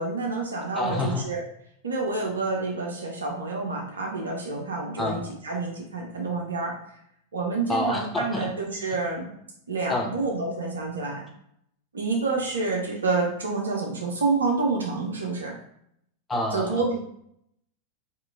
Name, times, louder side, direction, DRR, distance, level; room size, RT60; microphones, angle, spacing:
voice 1, 0.0-1.4 1.8-6.8 7.3-9.3 9.7-11.2 11.9-15.6 16.5-17.0, right 3 dB, 70° right, 0 dB, 0.5 m, -28 dB
voice 2, 0.7-1.3 5.0-5.2 7.7-8.5 9.9-10.1 16.3-16.8, left 1 dB, 10° left, 0 dB, 0.6 m, -27 dB
2.8 x 2.4 x 2.4 m, 0.73 s
figure-of-eight pair, 90°, 0 cm